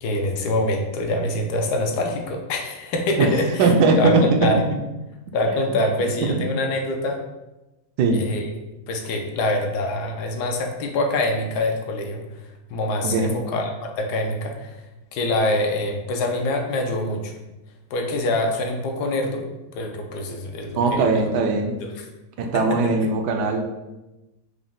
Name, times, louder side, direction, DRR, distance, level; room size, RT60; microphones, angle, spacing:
voice 1, 0.0-4.6 5.3-7.2 8.1-8.4 8.9-12.2 12.7-14.7 15.1-17.3 17.9-19.4 19.7-21.3 21.8-22.0, left 1 dB, 75° left, 3 dB, 1.2 m, -25 dB
voice 2, 3.6-4.8 6.2-6.4 8.0-8.2 13.0-13.3 20.8-21.8 22.4-23.6, right 3 dB, 80° right, 4 dB, 1.1 m, -20 dB
4.9 x 2.2 x 3.6 m, 1.0 s
omnidirectional pair, 1.8 m